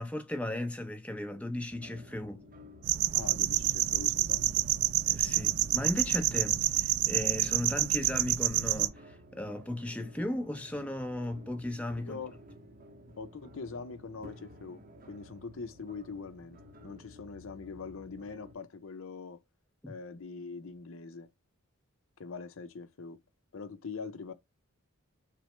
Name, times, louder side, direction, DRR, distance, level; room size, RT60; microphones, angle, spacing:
voice 1, 0.0-2.4 5.1-12.2 19.8-19.9, left 1 dB, 5° left, 0.6 m, -36 dB
sound 1, 1.7-18.6, left 1 dB, 40° right, 0.7 m, -54 dB
sound 2, 2.8-8.9, right 14 dB, 70° right, 0.3 m, -28 dB
voice 2, 3.1-4.7 12.0-12.4 13.2-19.4 19.9-21.3 22.2-23.2 23.5-24.3, left 4 dB, 65° left, 0.5 m, -43 dB
5.9 x 2.0 x 3.2 m
head